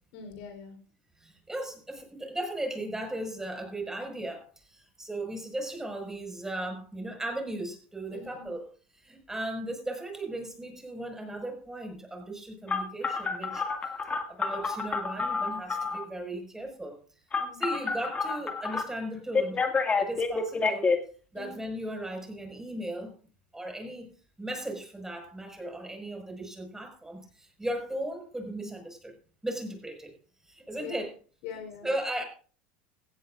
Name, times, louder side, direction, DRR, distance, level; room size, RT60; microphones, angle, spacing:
voice 1, 0.1-0.8 8.1-8.5 17.4-17.6 21.3-21.6 30.6-31.0 31.4-31.9, left 7 dB, 70° left, 6 dB, 4.1 m, -43 dB
voice 2, 1.2-8.7 8.9-13.7 14.3-17.0 17.5-19.6 20.0-20.9 21.3-23.2 23.5-24.1 24.4-29.1 29.4-30.1 30.5-31.1 31.8-32.2, right 1 dB, 10° right, 3 dB, 5.6 m, -36 dB
Telephone, 12.7-16.0 17.3-18.8 19.3-21.0, left 4 dB, 25° left, 2.1 m, -28 dB
16.5 x 15.5 x 2.6 m, 0.41 s
supercardioid pair, 105°, 6 cm